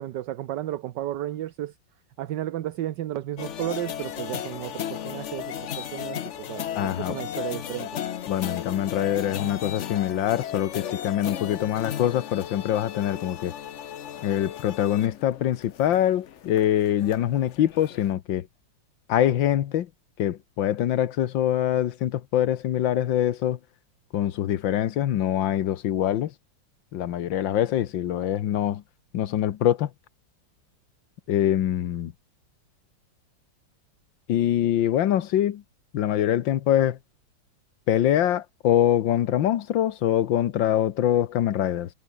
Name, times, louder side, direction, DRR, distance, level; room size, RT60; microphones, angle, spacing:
voice 1, 0.0-1.7 2.2-7.9, right 13 dB, 70° right, 1.4 m, -33 dB
sound 1, 3.4-18.1, left 10 dB, 55° left, 0.9 m, -35 dB
voice 2, 6.8-7.2 8.3-13.5 14.2-18.5 19.1-19.9 20.2-23.6 24.1-26.3 26.9-28.8 29.1-29.9 31.3-32.1 34.3-35.6 35.9-37.0 37.9-41.9, left 11 dB, 85° left, 1.7 m, -24 dB
omnidirectional pair, 2.0 m